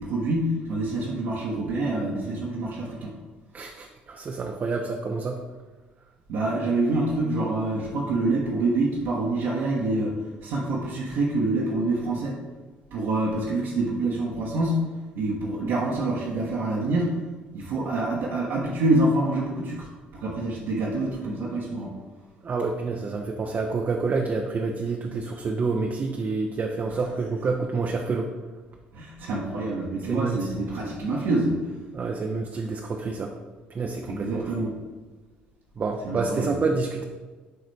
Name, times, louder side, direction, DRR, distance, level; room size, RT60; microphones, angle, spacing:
voice 1, 0.0-3.1 6.3-12.4 12.9-14.8 15.1-17.2 17.5-21.9 28.9-31.7 34.1-34.8 36.0-36.6, right 2 dB, 60° right, -6 dB, 1.2 m, -26 dB
voice 2, 3.5-5.4 22.4-28.3 30.1-30.4 31.9-33.3 33.7-34.6 35.8-37.0, right 4 dB, 35° right, 2 dB, 0.7 m, -28 dB
11.0 x 3.9 x 3.3 m, 1.3 s
figure-of-eight pair, 50°, 5 cm